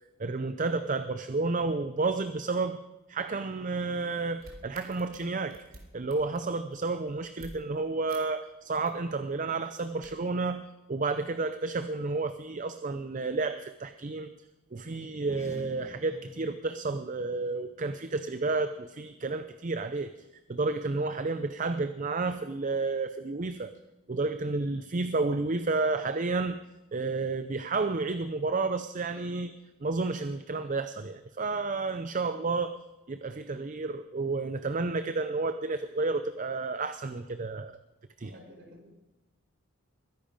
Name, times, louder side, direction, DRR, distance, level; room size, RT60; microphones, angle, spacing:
voice 1, 0.2-2.8 3.1-5.6 5.9-10.6 10.9-14.3 14.7-20.1 20.5-23.7 24.1-26.5 26.9-29.5 29.8-32.8 33.1-37.8 38.2-38.3, right 3 dB, 35° right, 10 dB, 0.5 m, -31 dB
sound 1, 4.0-7.5 8.1-8.2 8.5-9.0 9.5-10.1, right 2 dB, 70° right, 3.2 m, -51 dB
sound 2, 15.1-19.9, left 1 dB, 15° left, 1.2 m, -52 dB
voice 2, 38.2-39.0, equal, 55° right, 1 dB, 4.7 m, -52 dB
21.5 x 10.5 x 5.2 m, 1.0 s
head